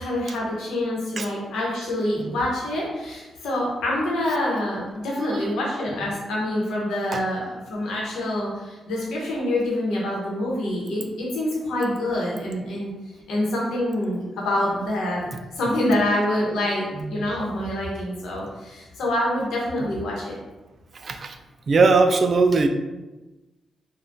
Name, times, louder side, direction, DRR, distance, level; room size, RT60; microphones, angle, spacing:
voice 1, 0.0-12.9 13.3-20.4, left 1 dB, 85° left, -4 dB, 0.9 m, -26 dB
voice 2, 17.0-17.3 20.9-21.4 21.7-22.7, right 4 dB, 50° right, 7 dB, 0.3 m, -20 dB
3.5 x 2.2 x 2.6 m, 1.1 s
cardioid pair, 65°, 0 cm